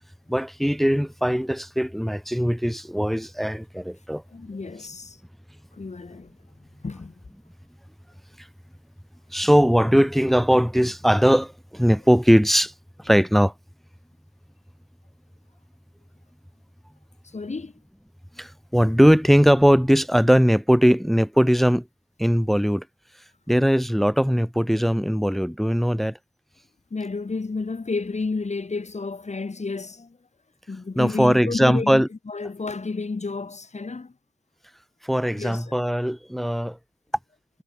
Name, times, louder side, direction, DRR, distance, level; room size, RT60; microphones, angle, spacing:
voice 1, 0.3-4.2 9.3-12.7 13.0-13.5 18.4-21.9 22.2-22.8 23.5-26.2 30.9-32.1 35.0-36.8, equal, ahead, 1.4 m, -20 dB
voice 2, 4.3-5.2 5.8-6.3 6.8-7.1 17.3-17.7 26.9-30.2 30.7-34.1 35.3-35.7, left 3 dB, 20° left, 3.9 m, -31 dB
figure-of-eight pair, 55°, 36 cm